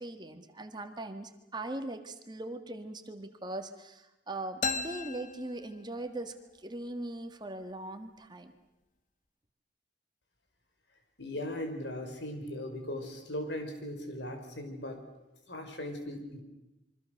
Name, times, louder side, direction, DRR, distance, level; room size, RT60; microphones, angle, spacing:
voice 1, 0.0-8.5, right 2 dB, 25° right, 7 dB, 1.7 m, -40 dB
sound 1, 4.6-6.3, left 4 dB, 45° left, 1.2 m, -36 dB
voice 2, 11.2-15.0 15.5-16.4, left 1 dB, 75° left, 5 dB, 5.1 m, -38 dB
26.5 x 24.5 x 6.5 m, 0.95 s
head